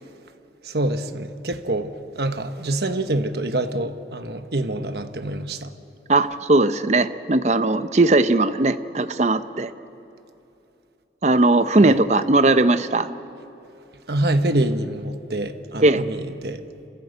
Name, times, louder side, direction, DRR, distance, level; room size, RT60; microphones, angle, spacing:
voice 1, 0.6-5.7 11.8-12.0 14.1-16.6, right 1 dB, 60° right, 8 dB, 1.2 m, -26 dB
voice 2, 6.1-9.7 11.2-13.1 15.8-16.0, right 2 dB, 40° right, 11 dB, 0.7 m, -18 dB
27.0 x 15.5 x 8.0 m, 2.8 s
head